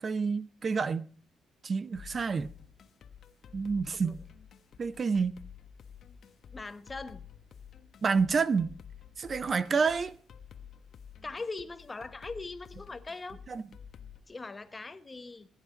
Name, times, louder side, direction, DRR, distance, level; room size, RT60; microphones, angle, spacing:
voice 1, 0.0-1.1 1.6-2.5 3.5-4.2 4.8-5.3 8.0-8.8 9.2-10.2 13.5-13.6, right 5 dB, 40° right, 0.6 m, -28 dB
sound 1, 1.9-14.2, left 8 dB, 60° left, 1.2 m, -51 dB
voice 2, 6.5-7.3 11.2-13.4 14.3-15.5, left 3 dB, 25° left, 1.2 m, -41 dB
20.0 x 10.0 x 3.9 m
cardioid pair, 90°, 0 cm